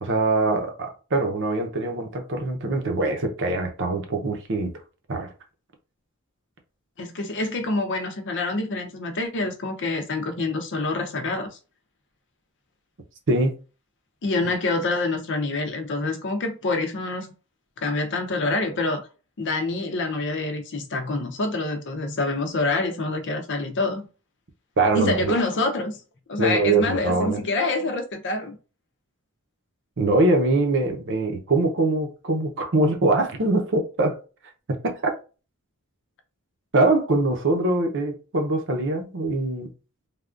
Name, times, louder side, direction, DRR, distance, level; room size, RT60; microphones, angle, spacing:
voice 1, 0.0-4.7 5.1-5.3 13.3-13.5 24.8-25.3 26.4-27.4 30.0-34.2 34.7-35.1 36.7-39.7, right 2 dB, 60° right, 0.8 m, -23 dB
voice 2, 7.0-11.6 14.2-17.3 17.8-19.1 19.4-24.1 24.9-26.0 26.3-28.6, left 2 dB, 55° left, 0.6 m, -26 dB
3.5 x 2.4 x 2.5 m
head